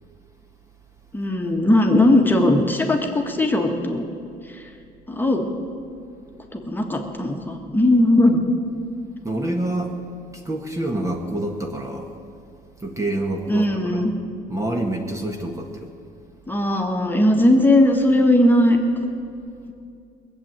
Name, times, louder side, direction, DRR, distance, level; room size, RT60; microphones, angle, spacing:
voice 1, 1.1-4.0 4.5-4.7 5.1-5.5 6.5-8.4 13.5-14.1 16.5-18.8, left 1 dB, 10° left, 2 dB, 1.6 m, -18 dB
voice 2, 9.2-9.9 10.4-12.1 12.8-14.1 14.5-15.9, right 1 dB, 20° right, 2 dB, 1.4 m, -27 dB
19.5 x 7.8 x 9.0 m, 2.5 s
cardioid pair, 110°, 17 cm